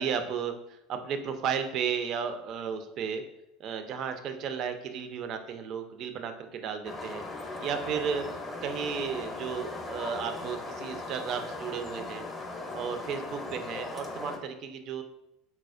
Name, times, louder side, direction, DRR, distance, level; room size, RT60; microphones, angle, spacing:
voice 1, 0.0-3.2 3.6-7.2 7.6-8.3 8.6-12.3 12.7-15.0, right 7 dB, 50° right, 7 dB, 0.3 m, -34 dB
sound 1, 6.8-14.4, left 2 dB, 25° left, 0.6 m, -38 dB
4.1 x 2.0 x 2.4 m, 0.86 s
figure-of-eight pair, 75°, 0 cm